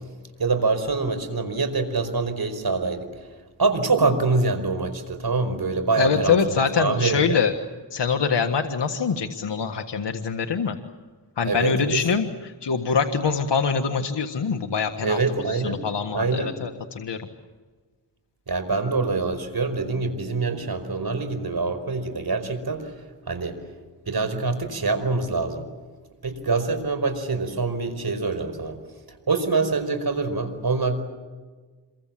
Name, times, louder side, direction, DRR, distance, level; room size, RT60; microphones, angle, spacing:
voice 1, 0.4-3.1 3.6-7.4 11.4-12.0 15.0-15.8 16.1-16.5 18.5-22.9 23.3-23.6 24.1-25.6 26.2-28.8 29.3-31.0, right 3 dB, 60° right, 9 dB, 5.0 m, -25 dB
voice 2, 6.0-7.5 7.9-10.8 11.4-17.3, left 6 dB, 75° left, 5 dB, 1.7 m, -24 dB
27.5 x 23.5 x 7.7 m, 1.4 s
cardioid pair, 45°, 42 cm